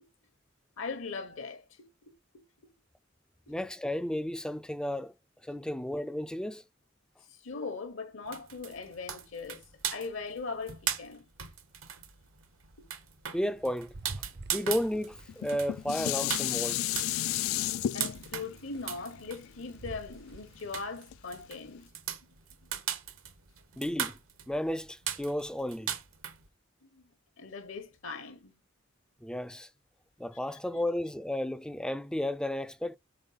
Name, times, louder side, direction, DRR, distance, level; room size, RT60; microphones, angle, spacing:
voice 1, 0.8-2.4 7.3-9.6 9.9-11.2 17.9-21.9 26.8-27.1 27.4-28.6 30.5-30.8, left 4 dB, 65° left, 0.9 m, -40 dB
voice 2, 3.5-5.1 5.4-6.6 13.3-13.9 14.5-16.8 23.8-24.2 24.5-25.9 29.2-29.7 30.2-33.0, left 1 dB, 5° left, 0.3 m, -33 dB
sound 1, 8.3-26.5, right 9 dB, 85° right, 1.3 m, -39 dB
sound 2, 13.3-21.0, right 2 dB, 55° right, 0.6 m, -51 dB
Dishes pots and pans, 15.3-20.6 21.1-21.2, left 13 dB, 85° left, 0.3 m, -33 dB
5.2 x 4.4 x 5.4 m
head